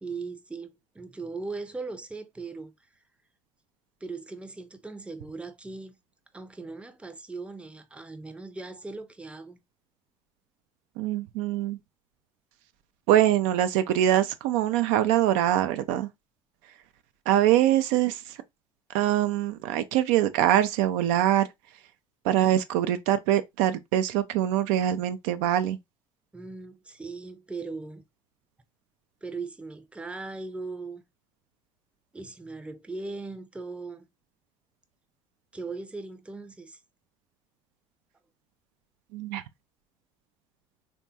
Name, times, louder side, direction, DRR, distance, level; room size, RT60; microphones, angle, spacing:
voice 1, 0.0-2.7 4.0-5.9 6.3-9.6 26.3-28.0 29.2-31.0 32.1-34.1 35.5-36.8, right 3 dB, 5° right, 0.5 m, -39 dB
voice 2, 11.0-11.8 13.1-16.1 17.3-18.4 18.9-21.5 22.2-25.8 39.1-39.4, right 12 dB, 60° right, 0.4 m, -23 dB
3.5 x 2.2 x 2.7 m
figure-of-eight pair, 60°, 17 cm